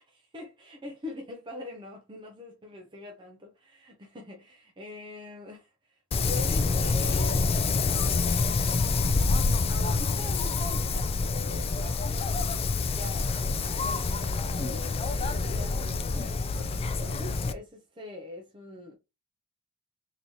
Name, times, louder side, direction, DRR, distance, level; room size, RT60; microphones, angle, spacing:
voice 1, 0.0-7.6 8.5-18.9, left 1 dB, 20° right, 0.6 m, -44 dB
Wind, 6.1-17.5, left 4 dB, 25° left, 0.3 m, -27 dB
3.9 x 2.7 x 3.0 m
head